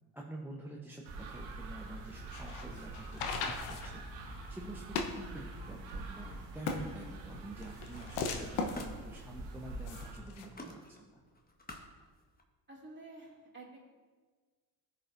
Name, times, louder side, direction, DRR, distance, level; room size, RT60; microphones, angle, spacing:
voice 1, 0.1-4.0 4.5-11.2, right 1 dB, 5° right, -1 dB, 0.9 m, -48 dB
sound 1, 1.0-10.1, right 2 dB, 80° right, 1.3 m, -45 dB
sound 2, 2.1-10.5, left 4 dB, 75° left, 1.1 m, -40 dB
Camera, 7.7-12.4, left 1 dB, 20° left, 1.3 m, -54 dB
voice 2, 12.7-13.8, right 2 dB, 25° right, -3 dB, 2.6 m, -50 dB
14.5 x 5.1 x 2.6 m, 1.4 s
hypercardioid pair, 60°, 48 cm